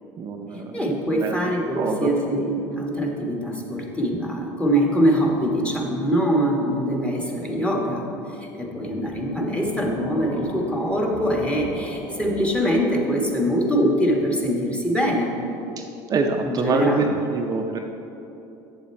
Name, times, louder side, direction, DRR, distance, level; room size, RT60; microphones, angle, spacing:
voice 1, 0.2-0.9 1.1-1.4 1.8-2.1 15.8-17.8, right 4 dB, 40° right, 3 dB, 0.6 m, -25 dB
voice 2, 0.7-8.1 8.5-15.3 16.4-17.1, equal, 10° left, -1 dB, 1.4 m, -23 dB
sound 1, 9.0-14.3, left 1 dB, 55° left, 1.8 m, -38 dB
7.9 x 7.1 x 4.3 m, 3.0 s
supercardioid pair, 95°, 10 cm